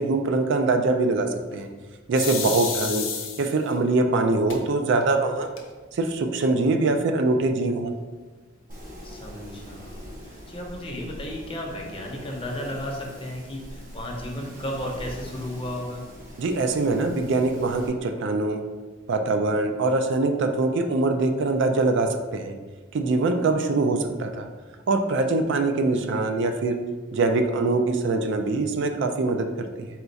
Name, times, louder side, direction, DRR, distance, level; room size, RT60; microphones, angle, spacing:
voice 1, 0.0-1.7 2.1-3.0 3.4-5.5 5.9-7.9 16.4-18.6 19.1-22.6 22.9-24.5 24.9-26.8 27.1-29.9, right 3 dB, 60° right, 6 dB, 0.4 m, -23 dB
sound 1, 2.1-3.7 4.5-4.6 5.0-5.1 5.4-6.0, left 6 dB, 70° left, 0.7 m, -31 dB
Wind, 8.7-17.9, equal, 40° right, 0.8 m, -42 dB
voice 2, 9.0-16.0, left 1 dB, 25° left, 0 dB, 0.6 m, -34 dB
4.3 x 2.3 x 3.9 m, 1.3 s
head